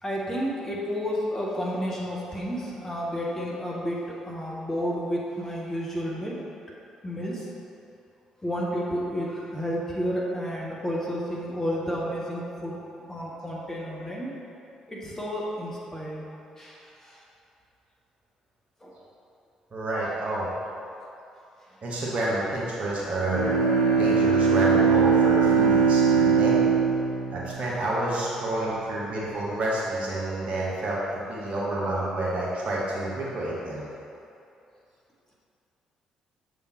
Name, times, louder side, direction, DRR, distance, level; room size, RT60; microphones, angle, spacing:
voice 1, 0.0-6.5 7.0-7.5 8.4-12.8 13.1-14.3 14.9-16.2 16.6-17.2 18.8-18.9, equal, 15° left, -4 dB, 1.1 m, -31 dB
voice 2, 19.7-20.5 21.8-23.6 24.0-26.6 27.3-31.0 31.3-33.8, right 1 dB, 45° right, -6 dB, 1.3 m, -29 dB
Bowed string instrument, 23.3-28.3, right 5 dB, 85° right, 0.4 m, -21 dB
7.0 x 3.7 x 4.3 m, 2.7 s
figure-of-eight pair, 45°, 3 cm